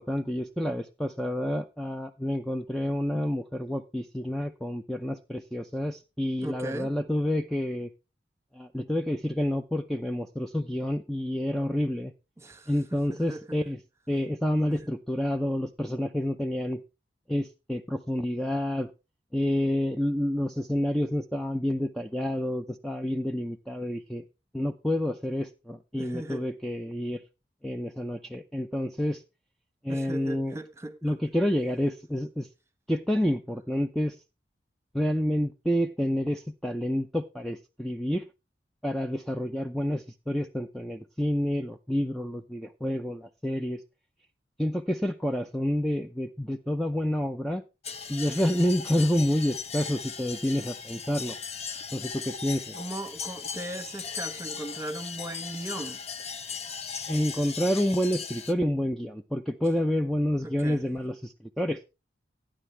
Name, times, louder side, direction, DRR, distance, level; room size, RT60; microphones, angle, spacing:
voice 1, 0.0-7.9 8.5-12.1 12.7-13.8 14.1-16.8 17.3-18.9 19.3-24.2 24.5-27.2 27.6-29.2 29.8-30.6 31.0-32.5 32.9-34.2 34.9-38.2 38.8-43.8 44.6-47.6 48.1-51.4 51.9-52.7 57.1-61.8, left 1 dB, ahead, 0.6 m, -29 dB
voice 2, 6.4-6.9 12.4-13.6 14.7-14.8 26.0-26.4 29.9-31.0 52.7-56.0 60.4-60.8, right 1 dB, 15° right, 1.4 m, -38 dB
sound 1, 47.8-58.5, left 6 dB, 35° left, 0.9 m, -38 dB
13.0 x 10.0 x 3.4 m
head